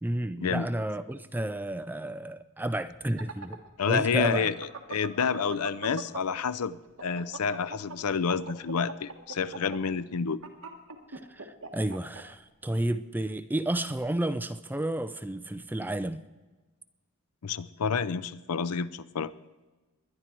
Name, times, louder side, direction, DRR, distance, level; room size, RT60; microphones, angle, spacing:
voice 1, 0.0-3.6 3.9-4.5 11.1-16.2, right 1 dB, 10° right, 0.4 m, -31 dB
sound 1, 2.9-6.5 6.8-12.2, right 4 dB, 65° right, 1.5 m, -41 dB
voice 2, 3.8-10.4 17.4-19.3, left 6 dB, 85° left, 0.5 m, -29 dB
20.5 x 11.0 x 4.5 m
head